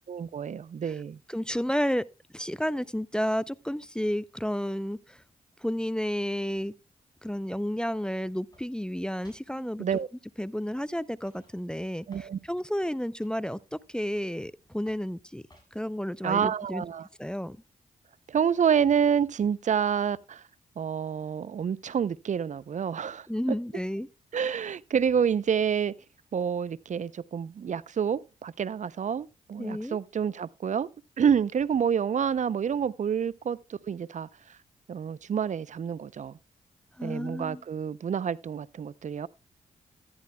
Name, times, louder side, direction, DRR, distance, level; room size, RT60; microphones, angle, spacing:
voice 1, 0.1-1.2 9.6-10.1 12.1-12.4 16.2-17.1 18.3-20.4 20.8-23.3 24.3-25.9 26.3-30.9 31.2-34.3 34.9-36.4 37.0-39.3, right 7 dB, 55° right, 0.6 m, -28 dB
voice 2, 1.3-2.1 2.3-5.2 5.6-6.7 7.2-9.9 10.4-15.4 15.7-16.8 17.2-17.6 23.3-24.1 29.6-30.0 37.0-37.6, equal, 5° left, 0.5 m, -31 dB
sound 1, 8.5-9.0 9.2-9.5 9.9-10.1 10.7-11.0 11.3-12.3 12.8-14.4 14.9-15.1 15.5-15.9, left 1 dB, 25° left, 7.5 m, -59 dB
14.0 x 10.5 x 2.3 m
supercardioid pair, 45°, 15 cm